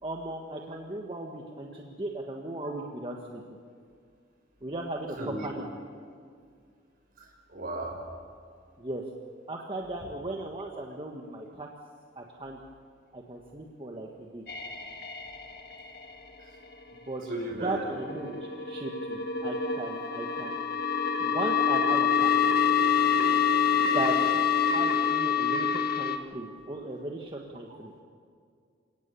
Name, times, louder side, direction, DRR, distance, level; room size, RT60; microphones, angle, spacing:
voice 1, 0.0-3.4 4.6-5.7 8.8-9.0 9.5-11.7 12.1-12.6 13.1-14.4 16.9-17.2 17.6-20.6 21.2-22.3 23.9-24.4 24.7-27.9, right 2 dB, 30° right, 0 dB, 1.6 m, -37 dB
voice 2, 5.2-5.6 7.2-8.0 17.3-17.8 18.2-18.3, right 1 dB, 50° right, 2 dB, 5.8 m, -35 dB
sound 1, 14.5-16.3 17.1-26.2, left 7 dB, 55° left, 1.7 m, -26 dB
29.0 x 18.5 x 7.0 m, 2.2 s
head